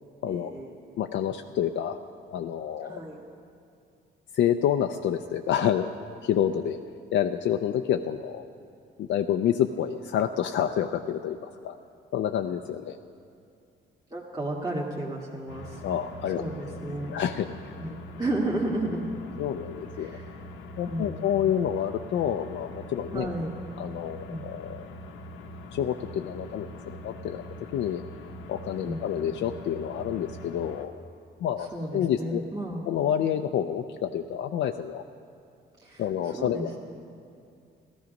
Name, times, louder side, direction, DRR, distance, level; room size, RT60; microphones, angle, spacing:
voice 1, 0.2-0.7 2.8-3.2 14.1-15.8 16.4-17.1 17.8-19.1 19.9-20.4 20.9-21.3 23.1-23.6 24.3-24.4 28.8-29.0 31.6-32.9 35.8-36.8, right 1 dB, 20° right, -3 dB, 1.7 m, -33 dB
voice 2, 1.0-2.0 2.3-3.0 4.3-5.9 6.2-6.8 7.1-8.5 9.0-11.7 12.1-13.0 15.8-16.4 17.1-17.5 19.4-20.2 20.8-23.3 23.8-24.9 25.7-27.4 27.7-28.0 28.5-30.9 31.4-32.4 32.9-35.0 36.0-36.8, left 9 dB, 70° left, 5 dB, 0.5 m, -28 dB
sound 1, 15.5-30.9, left 1 dB, 90° left, 1.0 m, -43 dB
15.0 x 12.5 x 5.2 m, 2.3 s
cardioid pair, 90°, 20 cm